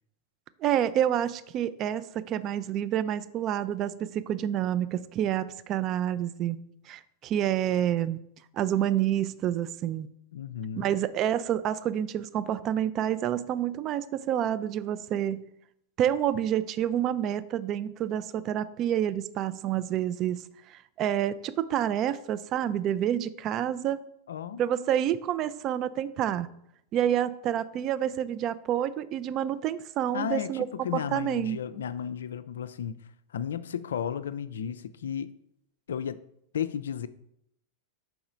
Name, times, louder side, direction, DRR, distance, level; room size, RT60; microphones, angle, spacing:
voice 1, 0.6-6.6 6.9-8.2 8.5-10.1 10.8-15.5 16.0-20.4 20.7-24.0 24.6-26.5 26.9-30.7 30.9-31.6, right 10 dB, 35° right, 0.3 m, -28 dB
voice 2, 10.3-10.9 24.3-24.6 30.1-33.0 33.3-35.3 35.9-36.2 36.5-37.1, left 8 dB, 65° left, 0.4 m, -33 dB
4.8 x 4.7 x 5.2 m
figure-of-eight pair, 90°, 0 cm